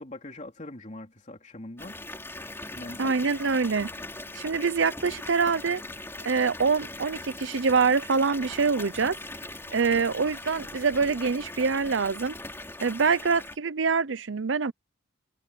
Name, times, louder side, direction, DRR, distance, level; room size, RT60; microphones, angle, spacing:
voice 1, 0.0-2.0 2.7-3.2, left 1 dB, 40° left, 3.3 m, -42 dB
Water tap faucet / Bathtub (filling or washing) / Fill (with liquid), 1.8-13.6, left 2 dB, 15° left, 4.2 m, -40 dB
voice 2, 3.0-3.9 4.3-5.8 6.2-9.2 9.7-12.3 12.8-14.7, right 5 dB, 75° right, 0.7 m, -25 dB
head